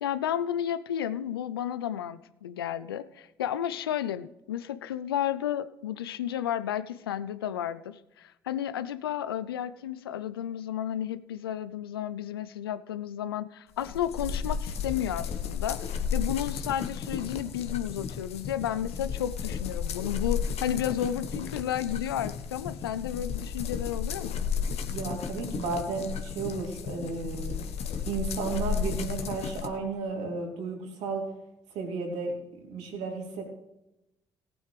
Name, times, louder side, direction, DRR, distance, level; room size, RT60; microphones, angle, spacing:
voice 1, 0.0-24.4, left 10 dB, 85° left, 15 dB, 0.5 m, -32 dB
sound 1, 13.8-29.7, left 7 dB, 60° left, 1.3 m, -33 dB
voice 2, 24.9-27.6 28.1-31.2 31.7-33.4, right 4 dB, 70° right, 1 dB, 3.0 m, -33 dB
18.0 x 9.3 x 3.3 m, 0.90 s
hypercardioid pair, 45°, 12 cm